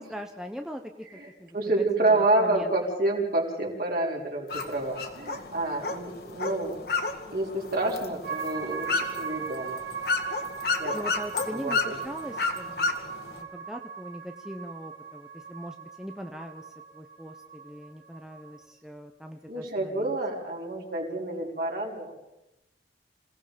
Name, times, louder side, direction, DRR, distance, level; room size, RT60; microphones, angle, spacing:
voice 1, 0.0-1.1 1.4-1.5 2.4-2.7 10.9-16.6 16.9-20.2, equal, 5° right, 4 dB, 1.0 m, -41 dB
voice 2, 1.1-6.8 7.3-9.8 10.8-11.0 11.5-12.0 19.5-22.2, right 2 dB, 55° right, -2 dB, 5.2 m, -28 dB
sound 1, 4.5-13.4, left 4 dB, 60° left, 2.3 m, -32 dB
sound 2, 8.2-18.7, right 6 dB, 80° right, 5.4 m, -39 dB
27.5 x 18.0 x 5.2 m, 0.88 s
head